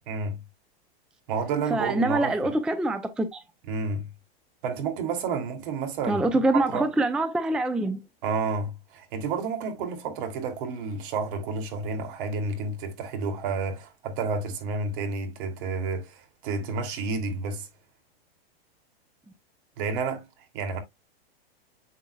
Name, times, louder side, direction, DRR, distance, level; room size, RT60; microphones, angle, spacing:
voice 1, 0.1-0.4 1.3-2.5 3.7-4.1 4.6-6.9 8.2-17.7 19.8-20.8, right 4 dB, 55° right, 2.8 m, -30 dB
voice 2, 1.7-3.4 6.1-8.0, right 2 dB, 5° right, 0.4 m, -25 dB
7.3 x 6.8 x 2.3 m
hypercardioid pair, 135°, 31 cm